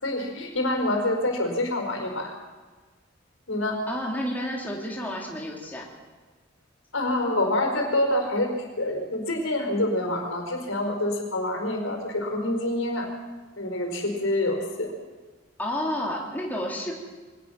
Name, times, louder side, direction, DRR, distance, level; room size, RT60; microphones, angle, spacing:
voice 1, 0.0-2.3 3.5-3.8 6.9-8.5 8.8-13.1 13.6-14.9, left 1 dB, 85° left, 3 dB, 5.1 m, -26 dB
voice 2, 3.9-5.8 15.6-16.9, left 1 dB, 10° left, -2 dB, 3.4 m, -30 dB
23.5 x 19.0 x 6.0 m, 1.4 s
head